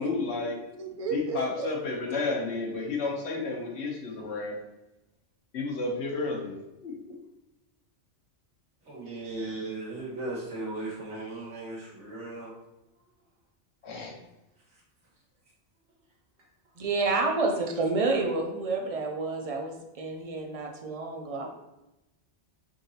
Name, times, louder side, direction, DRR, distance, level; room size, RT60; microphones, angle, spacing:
voice 1, 0.0-0.6 1.1-4.6 5.5-6.9 13.8-14.1, left 3 dB, 70° left, 0 dB, 1.1 m, -31 dB
voice 2, 0.8-1.7 16.8-21.6, right 3 dB, 45° right, 2 dB, 0.4 m, -29 dB
voice 3, 8.8-12.5 14.0-14.1, right 2 dB, 90° right, -5 dB, 1.6 m, -37 dB
3.8 x 3.7 x 2.7 m, 0.93 s
omnidirectional pair, 1.2 m